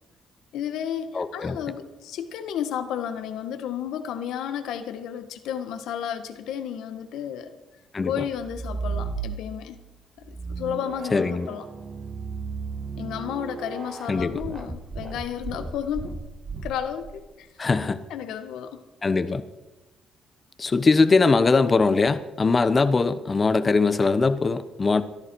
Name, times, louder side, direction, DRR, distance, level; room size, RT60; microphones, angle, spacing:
voice 1, 0.5-7.5 8.0-9.8 10.2-11.6 13.0-16.2 16.6-17.5 17.9-18.8, left 9 dB, 85° left, 9 dB, 1.5 m, -32 dB
voice 2, 1.1-1.6 7.9-8.1 11.1-11.5 14.1-14.4 17.6-18.0 19.0-19.4 20.6-25.0, left 4 dB, 30° left, 11 dB, 1.1 m, -21 dB
sound 1, 8.3-9.7 10.2-17.2, right 4 dB, 30° right, 1.8 m, -34 dB
22.5 x 13.5 x 4.7 m, 1.1 s
cardioid pair, 90°, 0 cm